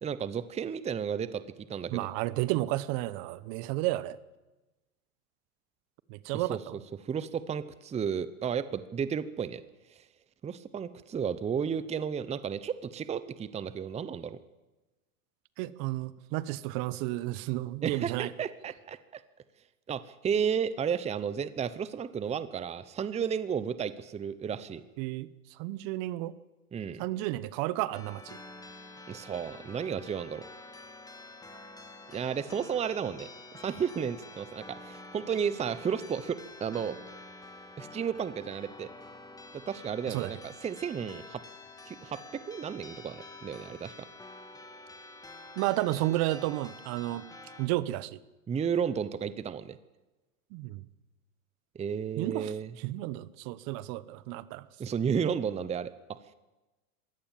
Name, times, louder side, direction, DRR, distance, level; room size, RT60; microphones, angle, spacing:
voice 1, 0.0-1.4 1.7-2.1 6.3-9.6 10.0-10.1 10.4-14.4 17.8-19.2 19.9-24.8 26.7-27.0 29.1-30.4 32.1-33.3 33.6-37.0 37.8-38.9 39.5-41.4 41.9-44.1 48.5-49.8 51.7-52.7 54.8-56.2, right 7 dB, 15° right, 15 dB, 0.8 m, -33 dB
voice 2, 1.9-4.2 6.1-6.8 15.6-18.3 25.0-25.3 25.6-26.3 27.0-28.4 40.1-40.3 45.6-47.2 47.6-48.2 50.5-50.8 52.2-52.5 52.8-54.6, right 17 dB, 50° right, 18 dB, 1.0 m, -32 dB
sound 1, 27.9-47.7, left 2 dB, 10° left, 2.1 m, -48 dB
21.5 x 16.5 x 7.4 m, 1.1 s
hypercardioid pair, 110°, 43 cm